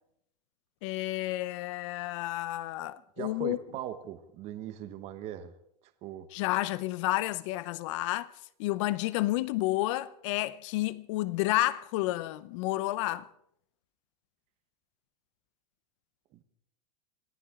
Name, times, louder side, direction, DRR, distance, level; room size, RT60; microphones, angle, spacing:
voice 1, 0.8-3.6 6.3-8.3 8.6-13.3, left 17 dB, 45° left, 0.8 m, -30 dB
voice 2, 3.2-5.5 6.0-6.3 16.3-16.4, right 11 dB, 30° right, 1.2 m, -40 dB
26.0 x 15.0 x 3.8 m
supercardioid pair, 160°, 21 cm